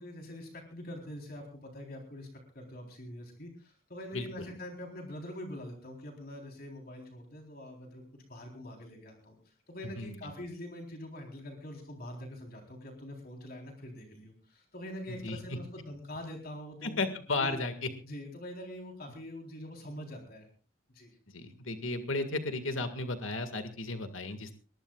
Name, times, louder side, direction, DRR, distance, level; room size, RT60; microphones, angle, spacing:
voice 1, 0.0-2.3 2.5-17.0 17.4-17.5 18.0-20.5 20.9-21.2, left 1 dB, 45° left, 2 dB, 3.8 m, -44 dB
voice 2, 4.1-4.5 10.0-10.3 15.2-15.6 16.8-17.9 21.3-24.5, left 3 dB, 75° left, 7 dB, 1.9 m, -34 dB
22.5 x 20.5 x 2.4 m, 0.39 s
head